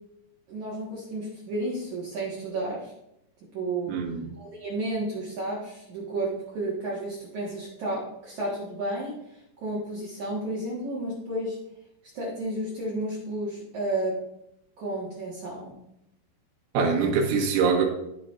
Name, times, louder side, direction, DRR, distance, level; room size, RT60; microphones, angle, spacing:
voice 1, 0.5-2.9 3.5-3.9 4.4-6.3 6.5-9.1 9.6-11.6 12.1-14.1 14.8-15.8, right 1 dB, 60° right, -6 dB, 2.2 m, -32 dB
voice 2, 3.9-4.3 16.7-17.9, right 5 dB, 85° right, 0 dB, 3.9 m, -23 dB
14.5 x 5.5 x 2.5 m, 0.81 s
omnidirectional pair, 5.3 m